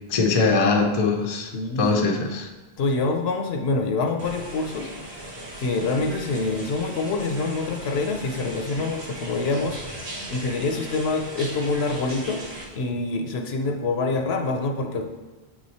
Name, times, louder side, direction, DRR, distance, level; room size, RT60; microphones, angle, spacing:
voice 1, 0.1-1.5 1.8-2.5, left 4 dB, 40° left, 2 dB, 0.6 m, -21 dB
voice 2, 1.5-2.0 2.8-5.3 5.6-10.0 10.3-12.4 12.7-15.0, left 3 dB, 75° left, 3 dB, 0.9 m, -26 dB
sound 1, 4.2-12.6, right 1 dB, 75° right, 1.5 m, -38 dB
7.6 x 3.1 x 4.1 m, 1.2 s
omnidirectional pair, 1.1 m